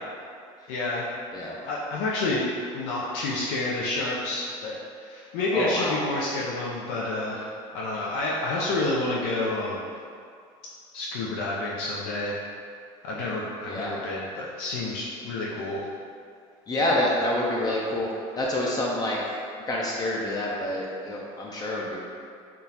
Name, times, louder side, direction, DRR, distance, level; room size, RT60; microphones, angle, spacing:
voice 1, 0.7-2.5 2.7-9.9 10.9-12.4 13.0-15.8, left 2 dB, 85° left, -5 dB, 0.5 m, -29 dB
voice 2, 5.5-6.0 13.7-14.0 16.7-18.1 18.4-19.2 19.7-22.0, left 1 dB, 25° left, -4 dB, 0.4 m, -27 dB
3.6 x 2.4 x 2.8 m, 2.3 s
cardioid pair, 120°, 14 cm